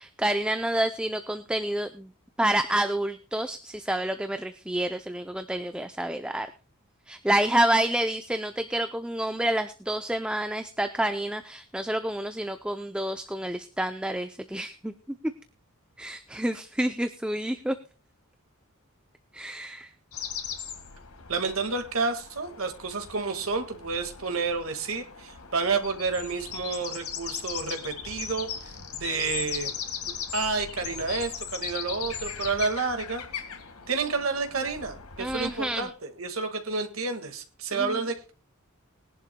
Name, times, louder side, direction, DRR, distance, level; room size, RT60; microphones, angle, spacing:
voice 1, 0.0-2.1 2.4-6.5 7.1-14.9 16.0-17.8 19.3-19.9 35.2-35.9 37.7-37.9, right 1 dB, 5° right, 8 dB, 0.5 m, -28 dB
sound 1, 20.1-35.9, left 7 dB, 85° left, 1.7 m, -38 dB
voice 2, 21.3-28.5 28.9-29.7 30.0-33.2 33.9-38.3, right 4 dB, 70° right, 6 dB, 1.8 m, -30 dB
20.5 x 11.0 x 2.2 m, 0.33 s
head